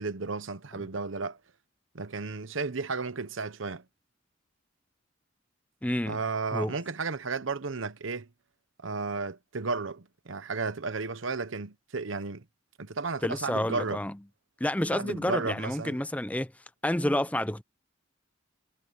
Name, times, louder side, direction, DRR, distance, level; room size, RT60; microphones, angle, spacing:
voice 1, 0.0-1.4 1.9-3.8 6.1-8.3 8.8-12.4 12.8-14.0 14.9-16.0, right 4 dB, 75° right, 1.0 m, -33 dB
voice 2, 5.8-6.2 6.5-6.7 13.2-14.2 14.6-16.5 16.8-17.6, left 1 dB, 5° left, 0.6 m, -29 dB
head